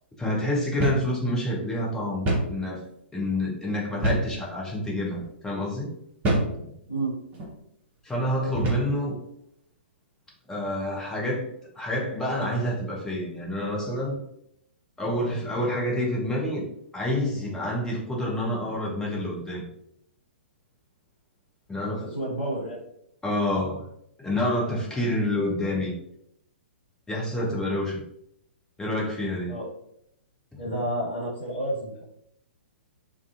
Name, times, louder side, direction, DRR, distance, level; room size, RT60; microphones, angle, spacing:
voice 1, 0.2-2.8 3.1-5.9 8.0-9.2 10.5-11.5 11.8-14.2 15.0-16.6 16.9-19.7 21.7-22.1 23.2-23.8 24.2-25.9 27.1-28.0 28.8-29.6, left 1 dB, 10° left, -3 dB, 0.6 m, -28 dB
sound 1, 0.8-1.1 1.4-1.5 2.3-2.6 4.0-4.4 5.1-5.3 6.2-6.6 7.3-7.5 8.6-8.9, right 1 dB, 25° right, 0.8 m, -25 dB
voice 2, 22.0-22.8 25.6-25.8 29.5-29.7 30.6-32.0, right 1 dB, 75° left, -8 dB, 0.9 m, -30 dB
2.4 x 2.3 x 2.4 m, 0.76 s
figure-of-eight pair, 115°, 7 cm